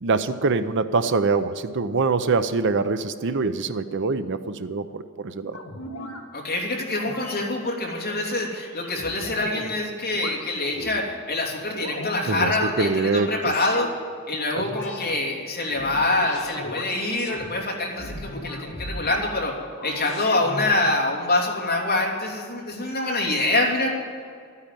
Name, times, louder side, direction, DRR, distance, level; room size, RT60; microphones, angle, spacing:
voice 1, 0.0-5.6 12.3-12.5 12.8-13.5 14.5-14.6, right 4 dB, 60° right, 11 dB, 0.7 m, -24 dB
sound 1, 5.5-6.2 6.9-7.4 7.9-9.7 10.1-11.0 11.5-12.7 13.3-13.9 14.5-15.1 15.6-17.5 18.0-19.2 19.7-21.0, left 1 dB, 70° left, 2.0 m, -36 dB
voice 2, 6.3-13.9 14.3-19.6 19.8-23.9, left 2 dB, 45° left, -2 dB, 2.9 m, -25 dB
13.0 x 9.8 x 9.1 m, 2.3 s
head